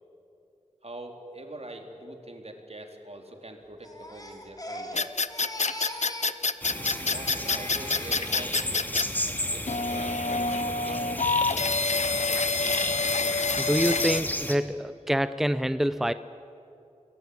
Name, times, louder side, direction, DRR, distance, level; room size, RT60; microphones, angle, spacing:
voice 1, 0.8-5.1 6.7-8.8 9.4-11.3, right 1 dB, 60° right, 3 dB, 3.5 m, -44 dB
Crying sobbing, 3.8-6.4 6.6-8.8 9.2-9.6, left 1 dB, 30° left, 3.7 m, -41 dB
sound 1, 4.9-9.1 9.7-14.2, left 3 dB, 70° left, 0.7 m, -27 dB
sound 2, 6.6-14.6, left 1 dB, 15° left, 2.3 m, -34 dB
voice 2, 13.6-16.1, equal, 5° right, 13 dB, 0.6 m, -26 dB
27.5 x 20.5 x 9.6 m, 2.9 s
wide cardioid pair, 50°, 12 cm